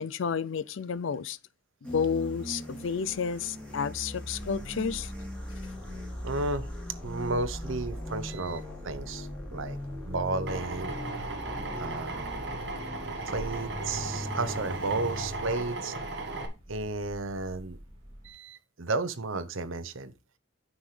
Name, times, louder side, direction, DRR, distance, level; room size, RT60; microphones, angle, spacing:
voice 1, 0.0-1.4 1.8-5.1, left 6 dB, 70° left, 0.5 m, -31 dB
sound 1, 1.8-15.5, left 1 dB, 5° left, 3.4 m, -40 dB
sound 2, 4.3-18.3, equal, 25° right, 4.2 m, -46 dB
voice 2, 6.2-6.7 7.0-9.8 10.1-10.9 11.8-12.3 13.2-15.9 16.7-17.8 18.2-20.1, right 3 dB, 80° right, 0.9 m, -33 dB
Drill, 10.5-16.5, right 2 dB, 55° right, 1.6 m, -36 dB
9.5 x 6.0 x 3.3 m
head